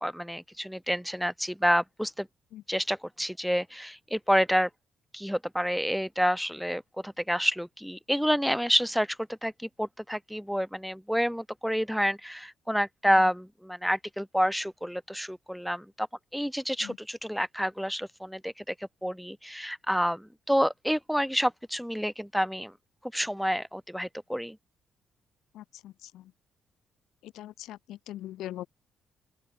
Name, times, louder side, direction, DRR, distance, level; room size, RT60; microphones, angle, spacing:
voice 1, 0.0-2.3 2.7-4.7 5.1-9.2 9.4-16.1 16.3-18.7 19.0-22.7 23.1-24.6, equal, ahead, 0.4 m, -28 dB
voice 2, 25.5-26.3 27.2-28.7, left 13 dB, 85° left, 1.9 m, -42 dB
open air
cardioid pair, 145°, 0 cm